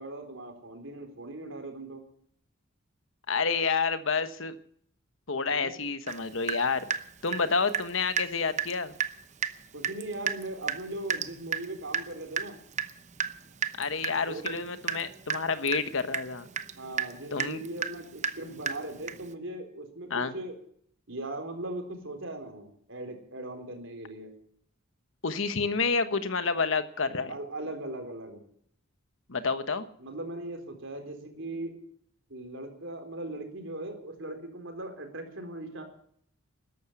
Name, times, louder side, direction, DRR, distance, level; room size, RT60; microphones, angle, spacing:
voice 1, 0.0-2.0 5.5-5.7 9.7-12.6 14.3-14.6 16.8-20.5 21.1-24.3 27.3-28.4 30.0-31.7 32.3-35.8, right 2 dB, 60° right, 5 dB, 4.1 m, -39 dB
voice 2, 3.3-4.6 5.3-6.8 7.2-8.9 13.8-16.5 17.3-17.6 20.1-20.3 25.2-27.3 29.3-29.9, left 4 dB, 65° left, 11 dB, 1.2 m, -29 dB
Water tap faucet / Drip, 6.1-6.2 6.5-7.9 8.2-8.3 8.6-8.7 9.0-9.1 9.4-9.6 9.8-19.3, right 7 dB, 35° right, 0.8 m, -33 dB
13.5 x 12.0 x 8.0 m, 0.64 s
head